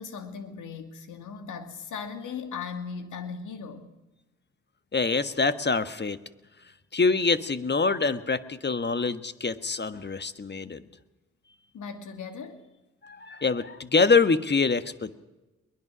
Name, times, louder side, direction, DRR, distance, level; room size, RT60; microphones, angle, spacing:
voice 1, 0.0-3.9 11.7-12.6, left 6 dB, 75° left, 7 dB, 2.5 m, -38 dB
voice 2, 4.9-6.2 6.9-10.8 13.0-15.1, left 4 dB, 35° left, 12 dB, 1.5 m, -25 dB
22.0 x 20.0 x 6.3 m, 1.1 s
supercardioid pair, 45°, 31 cm